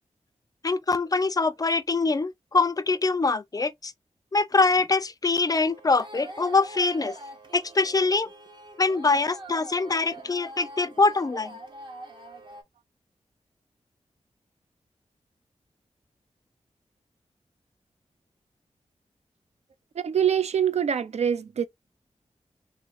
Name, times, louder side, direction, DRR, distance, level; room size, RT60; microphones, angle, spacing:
voice 1, 0.6-3.9 4.3-7.2 7.5-8.3 8.8-11.6, left 3 dB, 30° left, 0.4 m, -24 dB
sound 1, 5.5-12.6, right 2 dB, 40° right, 1.3 m, -43 dB
voice 2, 20.0-21.7, right 8 dB, 65° right, 0.4 m, -24 dB
3.5 x 2.1 x 3.1 m
wide cardioid pair, 65°, 12 cm